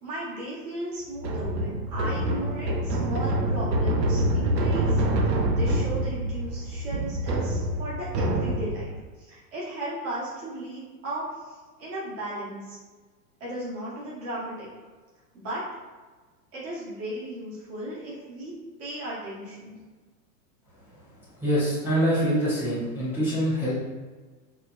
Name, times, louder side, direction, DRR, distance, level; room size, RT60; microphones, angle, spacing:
voice 1, 0.0-5.0 5.5-12.8 13.4-14.7 15.3-15.6 16.5-18.5 18.8-19.8, right 1 dB, 30° right, -7 dB, 1.3 m, -36 dB
sound 1, 1.2-8.9, right 1 dB, 85° right, 0.7 m, -26 dB
voice 2, 21.4-23.7, equal, 5° right, -11 dB, 0.5 m, -24 dB
4.3 x 2.2 x 2.5 m, 1.3 s
hypercardioid pair, 130°, 49 cm